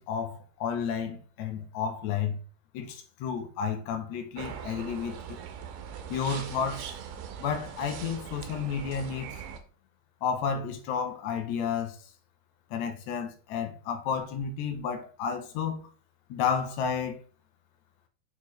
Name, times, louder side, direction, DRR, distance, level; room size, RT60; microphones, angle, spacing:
voice 1, 0.0-2.4 2.7-5.4 6.1-6.9 7.4-9.4 10.2-12.0 12.7-15.9 16.3-17.2, left 7 dB, 85° left, 1.6 m, -31 dB
sound 1, 4.4-9.6, right 8 dB, 90° right, 2.6 m, -41 dB
6.4 x 4.8 x 3.1 m
omnidirectional pair, 4.2 m